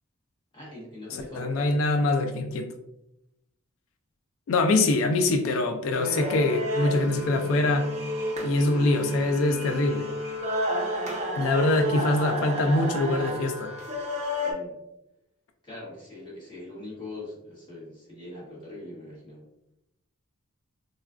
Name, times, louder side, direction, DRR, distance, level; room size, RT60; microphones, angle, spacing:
voice 1, 0.5-1.7 14.4-14.8 15.6-19.4, left 2 dB, 25° left, -7 dB, 1.2 m, -42 dB
voice 2, 1.1-2.7 4.5-7.9 8.4-10.1 11.4-13.7, left 2 dB, 75° left, 7 dB, 0.3 m, -24 dB
sound 1, 5.9-14.5, equal, 35° right, 0.7 m, -31 dB
3.8 x 2.3 x 2.3 m, 0.86 s
head